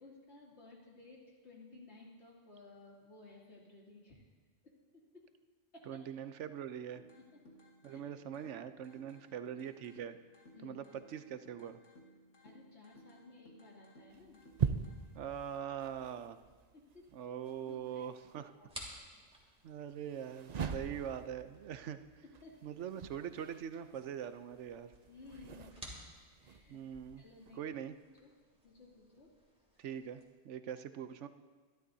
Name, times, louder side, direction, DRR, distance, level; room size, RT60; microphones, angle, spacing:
voice 1, 0.0-4.2 4.6-5.2 5.7-6.0 7.3-7.4 7.9-8.0 10.5-10.8 12.4-14.4 16.7-17.1 17.7-18.1 18.4-18.7 19.0-19.2 22.2-22.5 25.1-25.8 26.4-26.9 27.2-27.6 28.2-28.3 28.6-29.3, left 3 dB, 70° left, -4 dB, 3.0 m, -57 dB
voice 2, 5.9-7.0 7.8-10.2 10.6-11.8 15.1-16.4 17.1-18.5 19.6-22.0 22.6-24.9 26.7-27.2 27.5-27.9 29.8-31.3, right 9 dB, 85° right, 10 dB, 1.0 m, -43 dB
sound 1, 7.0-15.0, equal, 90° left, 2.3 m, -61 dB
sound 2, 14.1-18.4 20.1-27.6, right 7 dB, 45° right, 0.6 m, -43 dB
sound 3, 18.7-30.3, equal, 5° right, 2.6 m, -56 dB
25.0 x 12.0 x 2.7 m, 1.5 s
omnidirectional pair, 1.2 m